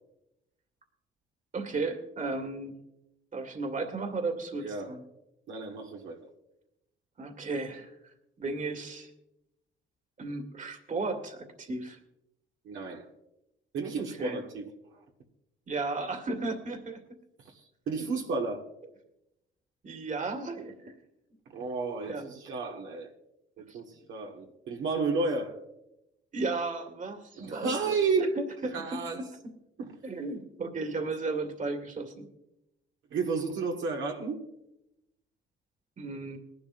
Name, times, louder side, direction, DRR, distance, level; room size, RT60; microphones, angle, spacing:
voice 1, 1.5-2.7 3.3-5.0 7.2-9.1 10.2-12.0 14.2-14.4 15.7-17.0 19.8-21.0 22.1-22.2 23.7-23.8 26.3-29.0 30.0-32.3 36.0-36.4, right 3 dB, 40° right, 5 dB, 2.0 m, -35 dB
voice 2, 4.6-4.9 5.5-6.3 12.6-13.1 13.7-15.0 17.4-18.7 21.5-23.1 23.6-25.6 27.4-28.4 28.6-29.2 29.8-29.9 31.0-31.1 33.1-34.4, right 4 dB, 75° right, 0 dB, 1.8 m, -32 dB
20.5 x 11.5 x 2.6 m, 0.87 s
cardioid pair, 90°, 20 cm